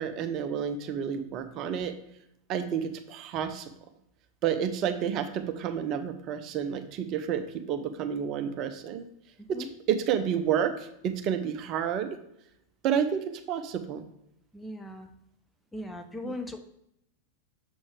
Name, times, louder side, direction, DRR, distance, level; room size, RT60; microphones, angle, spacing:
voice 1, 0.0-1.9 2.5-3.7 4.4-9.1 9.5-12.2 12.8-14.0 16.2-16.3, right 8 dB, 35° right, 7 dB, 0.7 m, -30 dB
voice 2, 9.4-9.7 14.5-15.1 15.7-16.6, left 1 dB, 10° left, 5 dB, 0.5 m, -38 dB
6.8 x 5.3 x 3.3 m, 0.78 s
figure-of-eight pair, 90°, 0 cm